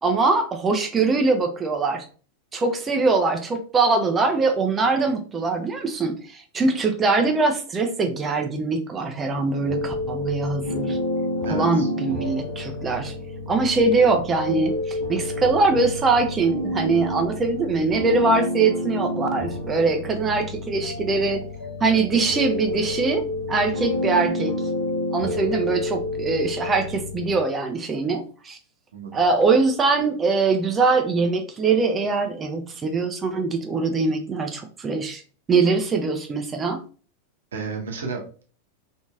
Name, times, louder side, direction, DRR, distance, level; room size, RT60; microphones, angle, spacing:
voice 1, 0.0-2.0 2.5-11.0 11.5-13.1 13.5-21.4 21.8-24.5 25.1-28.6 29.1-35.2 35.5-36.8, right 3 dB, 20° right, 5 dB, 0.4 m, -22 dB
sound 1, 9.6-27.3, left 1 dB, 70° left, 1.1 m, -29 dB
voice 2, 11.4-11.9 28.9-29.1 37.5-38.4, right 5 dB, 65° right, 1 dB, 0.8 m, -32 dB
2.9 x 2.6 x 2.3 m, 0.39 s
figure-of-eight pair, 90°, 0 cm